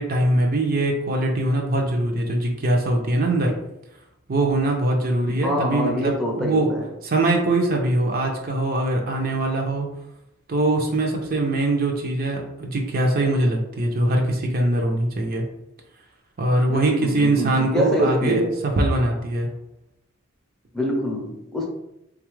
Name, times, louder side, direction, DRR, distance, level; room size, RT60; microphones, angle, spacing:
voice 1, 0.0-3.5 4.3-6.7 7.0-9.9 10.5-15.4 16.4-19.5, right 2 dB, 50° right, 1 dB, 0.5 m, -22 dB
voice 2, 5.4-6.9 16.6-18.5 20.7-21.7, equal, ahead, -2 dB, 0.6 m, -25 dB
3.7 x 2.4 x 3.1 m, 0.85 s
head